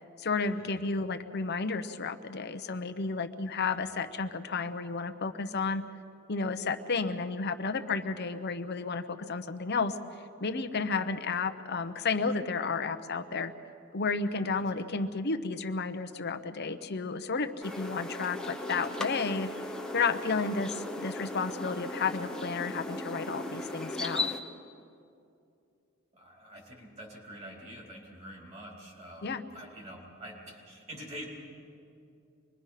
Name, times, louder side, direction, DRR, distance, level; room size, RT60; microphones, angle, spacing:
voice 1, 0.2-5.8 6.3-10.0 10.4-13.5 13.9-19.5 19.9-24.4 29.2-29.4, left 4 dB, 50° left, 8 dB, 0.8 m, -32 dB
sound 1, 17.6-24.4, left 2 dB, 5° left, 1.0 m, -37 dB
voice 2, 26.1-31.2, equal, 30° right, -1 dB, 4.1 m, -46 dB
25.0 x 21.5 x 5.8 m, 2.5 s
head